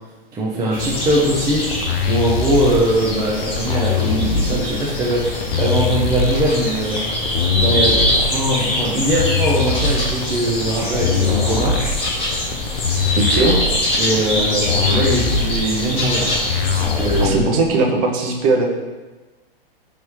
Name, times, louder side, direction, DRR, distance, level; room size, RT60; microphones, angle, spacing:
voice 1, 0.3-1.7 2.1-7.0 7.6-11.8 14.0-16.4 16.7-17.5, right 1 dB, 10° right, -4 dB, 0.4 m, -21 dB
sound 1, 0.7-17.3, left 1 dB, 20° left, 1.0 m, -24 dB
sound 2, 1.7-17.7, left 5 dB, 85° left, 0.5 m, -22 dB
voice 2, 13.1-13.5 17.2-18.7, right 3 dB, 35° right, 1 dB, 0.8 m, -18 dB
5.2 x 3.1 x 3.1 m, 1.2 s
hypercardioid pair, 120°, 29 cm